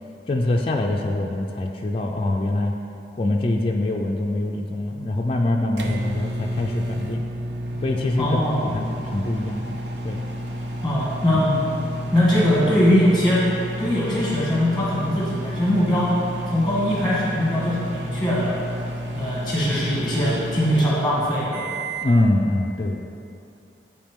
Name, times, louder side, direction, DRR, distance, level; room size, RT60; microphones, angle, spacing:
voice 1, 0.3-2.7 3.2-7.2 7.8-9.8 10.0-10.2 22.0-23.0, left 2 dB, 30° left, 0 dB, 0.4 m, -24 dB
sound 1, 5.2-22.2, equal, 75° right, 0.7 m, -31 dB
voice 2, 8.2-8.7 10.8-11.7 12.1-13.4 13.8-16.1 16.5-18.5 19.1-21.7, left 1 dB, ahead, -7 dB, 1.4 m, -21 dB
10.5 x 4.7 x 3.6 m, 2.7 s
head